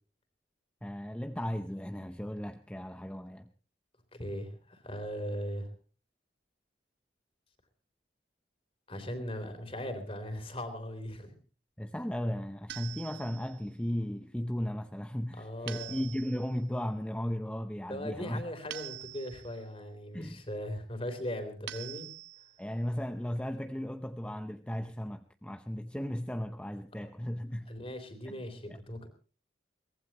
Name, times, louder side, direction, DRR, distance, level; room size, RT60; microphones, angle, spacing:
voice 1, 0.8-3.5 11.8-18.4 20.1-20.4 22.6-27.7 28.2-28.3 28.7-28.8, equal, 5° left, 0.7 m, -36 dB
voice 2, 4.1-5.7 8.9-11.4 15.4-16.0 17.9-22.1 27.7-29.1, equal, 30° left, 3.4 m, -39 dB
sound 1, 12.7-13.6 15.7-16.5 18.7-19.6 21.7-22.6, right 12 dB, 75° right, 1.5 m, -44 dB
23.0 x 18.5 x 3.0 m
head